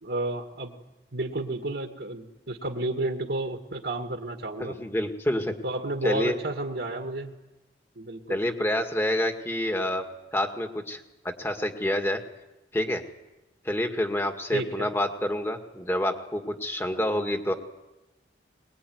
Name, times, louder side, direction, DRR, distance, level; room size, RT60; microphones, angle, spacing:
voice 1, 0.0-0.7 1.1-4.7 5.6-7.3 8.0-8.4 14.5-14.9, right 2 dB, 65° right, 2 dB, 2.2 m, -31 dB
voice 2, 4.6-5.5 6.0-6.4 8.3-10.1 10.3-12.2 12.7-13.0 13.6-17.5, left 1 dB, 15° left, 4 dB, 2.0 m, -28 dB
23.0 x 21.5 x 9.6 m, 1.0 s
head